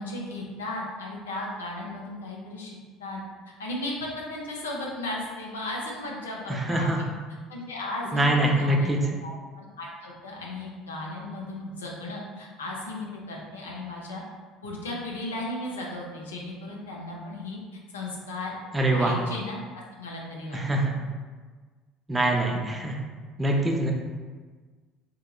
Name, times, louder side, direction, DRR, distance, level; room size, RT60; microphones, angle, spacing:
voice 1, 0.0-3.2 3.6-7.1 7.5-14.2 14.6-17.6 17.9-18.6 18.9-20.6, left 2 dB, 80° left, -2 dB, 0.5 m, -36 dB
voice 2, 6.5-7.0 8.1-9.0 18.7-19.1 20.5-20.9 22.1-23.0 23.4-23.9, right 1 dB, 15° right, 0 dB, 0.5 m, -24 dB
3.6 x 2.8 x 2.3 m, 1.4 s
figure-of-eight pair, 60°, 0 cm